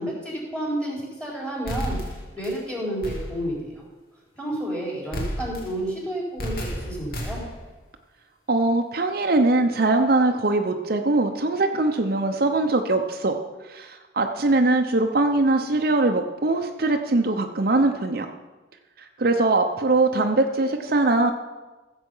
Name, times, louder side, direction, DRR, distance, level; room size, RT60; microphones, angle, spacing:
voice 1, 0.0-2.0 2.3-3.8 4.4-7.4, right 1 dB, 5° left, -4 dB, 4.3 m, -30 dB
sound 1, 1.7-2.6 3.0-3.6 5.1-5.8 6.4-7.7, equal, 55° left, 2.3 m, -32 dB
voice 2, 8.5-13.4 13.7-18.3 19.2-21.3, right 2 dB, 55° right, 4 dB, 0.8 m, -21 dB
15.0 x 8.0 x 5.6 m, 1.2 s
head